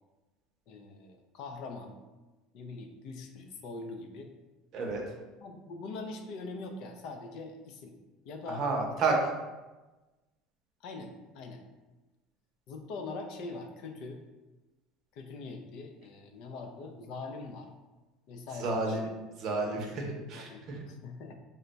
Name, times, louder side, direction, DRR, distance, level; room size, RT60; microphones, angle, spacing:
voice 1, 0.7-2.0 2.5-4.3 5.4-8.0 8.2-9.0 10.8-11.6 12.7-14.2 15.1-17.7 18.3-19.1 20.1-21.3, left 3 dB, 60° left, 5 dB, 0.4 m, -43 dB
voice 2, 8.5-9.3 18.6-19.1 19.4-20.8, right 3 dB, 45° right, 1 dB, 0.7 m, -30 dB
3.3 x 2.2 x 3.9 m, 1.2 s
cardioid pair, 140°, 0 cm